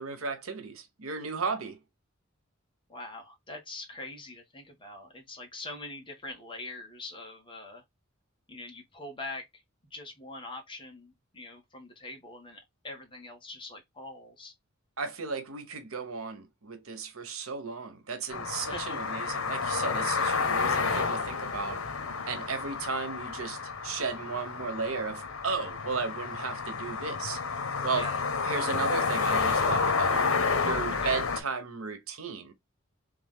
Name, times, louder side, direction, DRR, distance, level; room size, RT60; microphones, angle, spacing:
voice 1, 0.0-1.8 15.0-21.9 22.3-27.4 27.8-28.1 28.4-32.5, right 4 dB, 90° right, 1.1 m, -35 dB
voice 2, 2.9-7.8 8.5-9.6 9.9-14.5 18.6-19.0 27.9-28.2 31.0-31.1, left 2 dB, 25° left, 1.6 m, -43 dB
sound 1, 18.3-31.4, left 5 dB, 90° left, 1.0 m, -30 dB
3.5 x 3.5 x 3.6 m
head